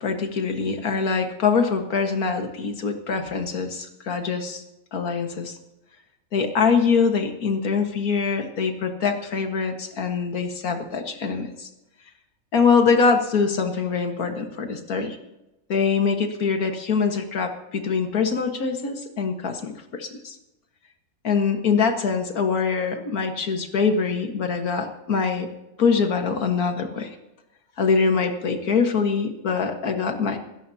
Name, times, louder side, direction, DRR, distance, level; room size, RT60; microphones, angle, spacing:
voice 1, 0.0-4.6 4.9-5.6 6.3-11.7 12.5-15.2 15.7-20.4 21.2-25.5 25.8-27.2 27.8-30.4, left 5 dB, 85° left, 5 dB, 2.0 m, -23 dB
26.0 x 13.5 x 2.8 m, 0.95 s
omnidirectional pair, 1.5 m